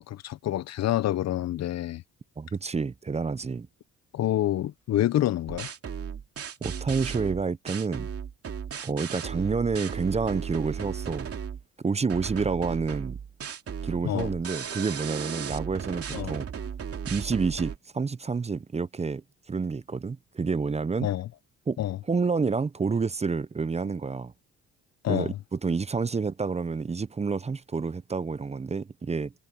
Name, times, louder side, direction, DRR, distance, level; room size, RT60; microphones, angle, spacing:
voice 1, 0.0-2.0 4.1-5.7 14.0-14.3 16.1-16.4 21.0-21.3 21.8-22.0 25.0-25.4, left 13 dB, 60° left, 0.7 m, -27 dB
voice 2, 2.4-3.7 6.6-8.1 8.8-11.3 11.8-13.2 13.8-16.5 17.1-19.2 19.5-21.1 21.7-21.8 22.1-24.3 25.1-29.3, right 4 dB, 20° right, 0.6 m, -29 dB
sound 1, 5.5-11.6 12.1-17.8, right 7 dB, 50° right, 2.6 m, -36 dB
cardioid pair, 90°, 30 cm